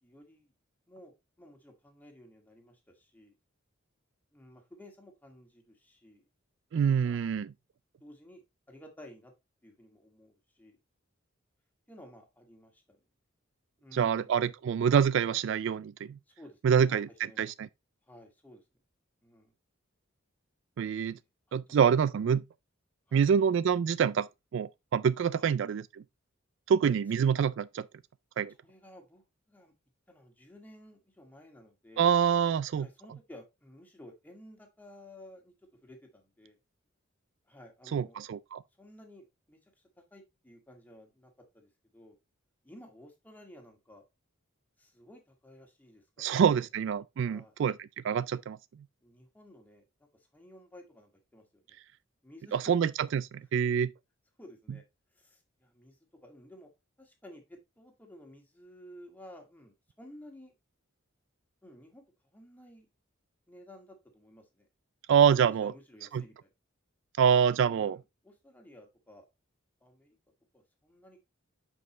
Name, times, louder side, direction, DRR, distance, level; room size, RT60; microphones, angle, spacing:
voice 1, 0.0-0.5 0.9-3.3 4.3-6.2 6.7-7.2 8.0-8.4 8.7-9.3 9.6-10.8 11.9-13.0 13.8-14.3 16.3-17.0 17.2-17.4 18.0-18.6 19.2-19.5 21.7-21.8 23.1-23.2 25.4-25.5 28.5-29.7 30.1-32.1 32.8-35.5 35.8-36.6 37.5-38.2 38.8-39.7 40.1-42.2 42.6-44.0 44.8-46.6 47.3-47.5 49.0-49.8 50.3-51.8 52.2-52.6 54.4-54.8 55.1-56.7 57.0-60.5 61.6-62.9 63.5-64.7 65.3-66.5 67.6-69.3 69.8-70.2 70.5-71.2, left 1 dB, 10° left, 2.0 m, -54 dB
voice 2, 6.7-7.5 13.9-16.2 16.6-17.1 17.4-17.7 20.8-21.2 21.5-22.4 23.1-25.8 26.7-27.9 28.4-28.5 32.0-32.9 37.9-38.6 46.2-47.8 48.0-48.6 52.5-53.9 65.1-65.7 66.1-66.2 67.2-68.0, right 7 dB, 60° right, 0.3 m, -26 dB
9.4 x 5.4 x 3.1 m
head